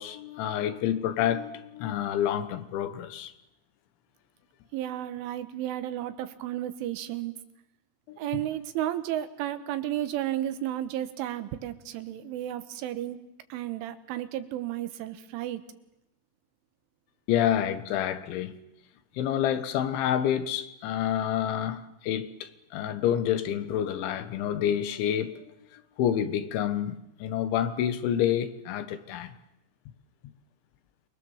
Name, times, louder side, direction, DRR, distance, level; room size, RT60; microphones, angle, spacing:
voice 1, 0.0-3.3 8.1-8.4 17.3-18.6 19.2-29.4, left 10 dB, 80° left, 3.6 m, -28 dB
voice 2, 4.7-7.3 8.2-13.2 13.5-15.6, right 12 dB, 85° right, 3.8 m, -33 dB
28.5 x 21.5 x 7.3 m
omnidirectional pair, 5.5 m